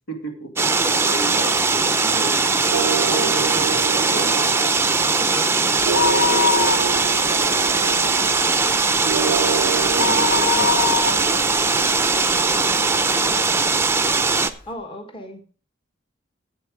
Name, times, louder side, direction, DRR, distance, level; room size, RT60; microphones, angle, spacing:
voice 1, 0.1-3.4 8.0-8.1 9.2-13.0, right 1 dB, 80° left, 4 dB, 2.4 m, -35 dB
sound 1, 0.6-14.5, right 4 dB, 15° right, 0.6 m, -20 dB
sound 2, 2.7-11.9, right 6 dB, 70° right, 0.5 m, -28 dB
voice 2, 3.1-6.9 14.7-15.5, equal, 25° left, 5 dB, 1.3 m, -36 dB
sound 3, 5.9-7.4 7.8-7.9 8.3-12.7 13.2-13.3 14.1-14.2 14.4-14.5, left 6 dB, 45° left, 2.4 m, -24 dB
10.5 x 8.2 x 4.9 m, 0.37 s
head